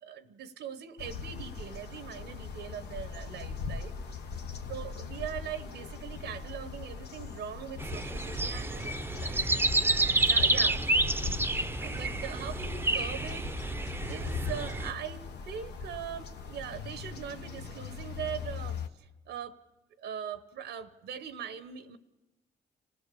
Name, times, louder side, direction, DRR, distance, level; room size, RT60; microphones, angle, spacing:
voice 1, 0.0-3.9 4.7-9.5 10.2-10.9 11.8-13.5 14.1-19.6 20.0-22.0, right 8 dB, 85° right, 12 dB, 0.9 m, -41 dB
sound 1, 1.0-18.9, left 5 dB, 75° left, 1.2 m, -40 dB
sound 2, 7.8-14.9, right 2 dB, 15° right, 0.6 m, -29 dB
27.0 x 16.0 x 6.8 m, 1.0 s
supercardioid pair, 60°, 17 cm